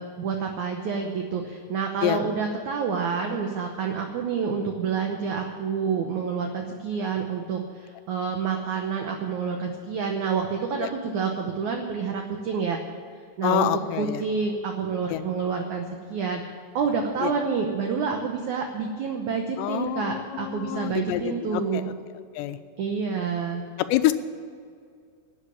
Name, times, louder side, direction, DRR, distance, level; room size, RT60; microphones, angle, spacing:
voice 1, 0.0-12.8 13.4-13.7 14.0-15.8 16.1-16.4 16.7-21.9 22.8-23.6, right 5 dB, 80° right, 3 dB, 1.7 m, -28 dB
voice 2, 13.4-14.2 15.1-15.2 17.2-17.3 19.6-21.9 22.4-22.6 23.9-24.1, left 13 dB, 90° left, 11 dB, 2.9 m, -26 dB
12.5 x 8.2 x 9.7 m, 2.2 s
omnidirectional pair, 4.9 m